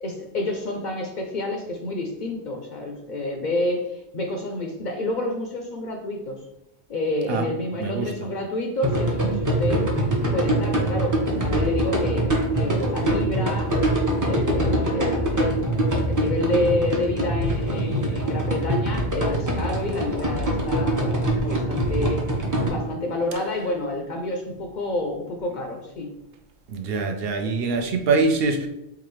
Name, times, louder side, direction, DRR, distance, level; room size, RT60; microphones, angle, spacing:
voice 1, 0.0-6.4 6.9-9.9 10.3-15.6 16.1-22.2 22.7-26.1, left 1 dB, 55° left, 2 dB, 0.5 m, -29 dB
voice 2, 7.8-8.1 26.7-28.7, right 3 dB, 65° right, 4 dB, 0.7 m, -23 dB
sound 1, 8.8-22.7, right 1 dB, 25° right, 0.5 m, -24 dB
4.7 x 2.4 x 3.1 m, 0.87 s
omnidirectional pair, 1.1 m